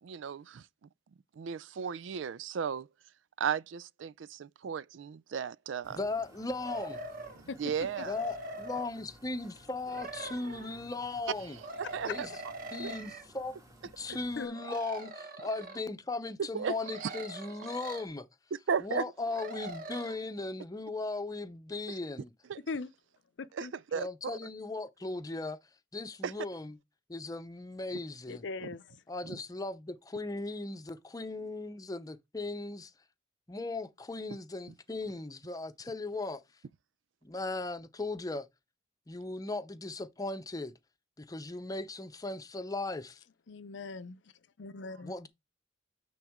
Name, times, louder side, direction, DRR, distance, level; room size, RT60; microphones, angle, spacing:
voice 1, 0.0-0.7 1.4-2.9 3.4-6.0 7.4-8.1 11.4-12.3 12.8-12.9 16.5-17.1 18.5-19.0 22.5-22.6 23.5-24.4 26.2-26.3 28.6-28.8 29.2-29.4, right 7 dB, 80° right, 0.4 m, -35 dB
sound 1, 5.8-14.5, equal, 20° right, 1.7 m, -57 dB
voice 2, 6.0-7.0 8.1-11.6 12.0-12.3 12.7-13.5 14.0-18.3 18.8-22.3 23.9-25.6 25.9-26.7 27.1-28.4 29.1-32.9 33.5-36.4 37.2-38.5 39.1-40.7 41.2-43.2 45.0-45.3, left 2 dB, 20° left, 0.7 m, -37 dB
sound 2, 6.6-7.4 7.8-8.9 9.8-10.8 11.6-13.2 14.5-15.8 16.8-18.1 19.3-20.2, right 2 dB, 50° right, 1.2 m, -43 dB
voice 3, 23.4-23.7 28.3-29.0 43.5-44.2 44.6-45.1, left 4 dB, 70° left, 0.6 m, -40 dB
9.0 x 3.9 x 3.6 m
head